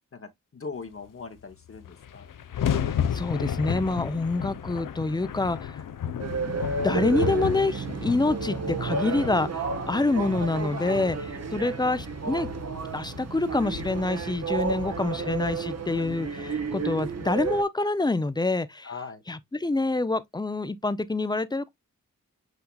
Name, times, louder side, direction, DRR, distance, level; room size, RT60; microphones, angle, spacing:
voice 1, 0.1-2.3 10.7-11.2 14.7-15.3 18.8-19.2, left 4 dB, 40° left, 0.9 m, -41 dB
sound 1, 1.4-1.5 1.7-16.0, left 8 dB, 75° left, 0.6 m, -34 dB
voice 2, 2.9-5.8 6.4-11.2 11.5-12.5 12.9-18.9 19.3-21.7, left 2 dB, 15° left, 0.5 m, -27 dB
sound 2, 6.2-17.6, right 4 dB, 50° right, 0.9 m, -32 dB
7.9 x 2.7 x 2.2 m
cardioid pair, 50°, 33 cm